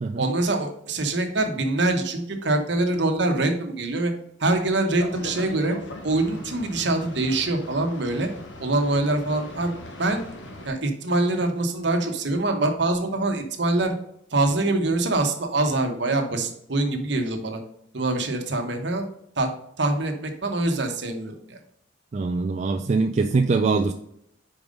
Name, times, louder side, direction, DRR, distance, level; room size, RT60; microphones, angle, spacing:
voice 1, 0.2-4.1 4.4-5.7 6.0-8.3 8.6-9.7 10.0-10.2 10.6-13.9 14.3-17.6 17.9-19.0 19.4-19.5 19.8-21.6, right 2 dB, 65° right, 4 dB, 1.1 m, -24 dB
Boat Water vehicle, 5.0-10.7, left 2 dB, 70° left, 1.2 m, -39 dB
voice 2, 22.1-23.9, right 4 dB, 35° right, 6 dB, 0.3 m, -23 dB
5.1 x 4.7 x 5.2 m, 0.73 s
head